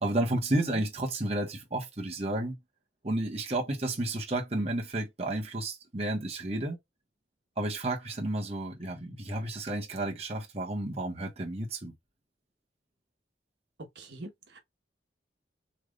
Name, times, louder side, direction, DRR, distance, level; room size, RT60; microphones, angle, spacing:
voice 1, 0.0-2.6 3.0-6.8 7.6-11.9, right 1 dB, 35° right, 1.4 m, -31 dB
voice 2, 13.9-14.6, right 2 dB, 75° right, 1.3 m, -43 dB
5.8 x 3.3 x 2.5 m
head